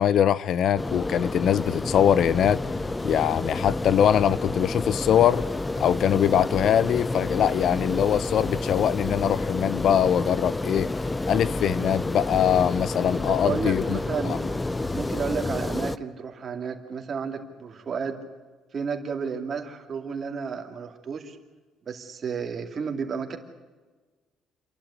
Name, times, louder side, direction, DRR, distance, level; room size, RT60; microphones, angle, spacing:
voice 1, 0.0-2.6 3.0-5.5 5.8-10.9 11.3-14.0 14.2-14.4, left 9 dB, 55° left, 0.6 m, -22 dB
sound 1, 0.8-16.0, left 2 dB, 15° left, 0.6 m, -29 dB
voice 2, 13.2-14.4 14.9-18.2 18.7-21.4 21.9-23.4, right 6 dB, 35° right, 2.5 m, -32 dB
28.5 x 11.5 x 9.7 m
cardioid pair, 145°, 0 cm